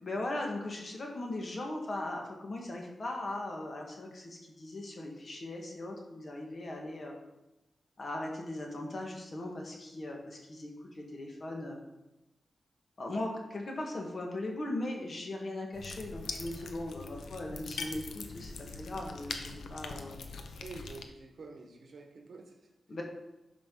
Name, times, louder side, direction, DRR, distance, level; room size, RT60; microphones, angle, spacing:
voice 1, 0.0-7.1 8.0-11.8 13.0-20.2 22.9-23.0, left 1 dB, 45° left, 0 dB, 1.7 m, -39 dB
sound 1, 15.7-21.0, left 4 dB, 90° left, 0.8 m, -42 dB
voice 2, 20.6-23.0, right 3 dB, 60° right, 2 dB, 1.4 m, -49 dB
12.0 x 5.1 x 3.9 m, 0.98 s
wide cardioid pair, 105°, 0 cm